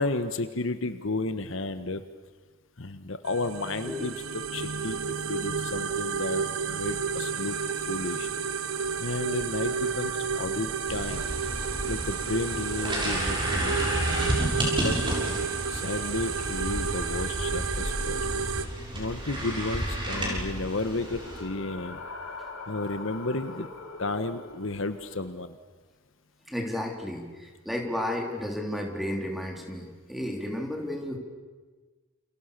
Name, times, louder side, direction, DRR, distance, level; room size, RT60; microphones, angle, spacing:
voice 1, 0.0-2.0 2.8-4.1 4.5-5.0 5.3-7.6 7.9-8.3 9.0-11.3 11.8-14.3 14.8-14.9 15.7-18.2 18.9-22.0 22.7-23.7 24.0-25.6, left 2 dB, 65° left, 10 dB, 1.5 m, -32 dB
sound 1, 3.3-18.7, right 6 dB, 90° right, 1.4 m, -31 dB
sound 2, 10.9-21.4, equal, 25° right, 7.4 m, -31 dB
sound 3, 20.2-25.3, left 3 dB, 90° left, 4.1 m, -43 dB
voice 2, 26.5-31.2, left 1 dB, ahead, 2 dB, 3.9 m, -33 dB
29.5 x 29.5 x 6.9 m, 1.3 s
head